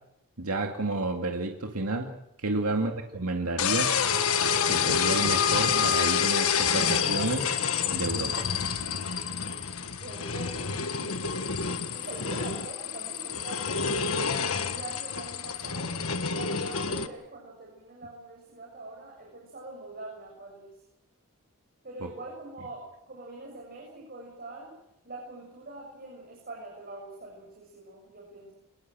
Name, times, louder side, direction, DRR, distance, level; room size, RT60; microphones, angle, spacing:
voice 1, 0.4-4.0 4.7-7.5 7.9-8.5 22.0-22.1, right 2 dB, 85° right, 3 dB, 2.3 m, -30 dB
voice 2, 2.7-3.0 10.0-11.3 11.9-16.0 16.3-20.7 21.8-24.8 25.0-28.5, right 2 dB, 45° right, -1 dB, 7.1 m, -44 dB
sound 1, 3.6-17.1, left 6 dB, 70° left, 1.6 m, -28 dB
25.0 x 21.0 x 7.8 m, 0.79 s
head